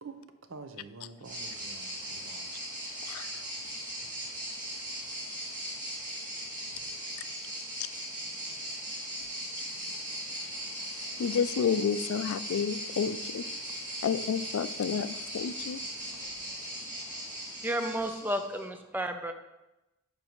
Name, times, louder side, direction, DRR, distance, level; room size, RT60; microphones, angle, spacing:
voice 1, 0.0-2.6, right 3 dB, 65° right, 0.7 m, -47 dB
sound 1, 1.2-18.6, right 1 dB, 40° right, 2.3 m, -39 dB
voice 2, 11.0-13.4 14.0-15.8, left 7 dB, 85° left, 0.4 m, -30 dB
voice 3, 17.6-19.3, right 1 dB, 10° right, 0.5 m, -32 dB
10.5 x 5.3 x 3.1 m
head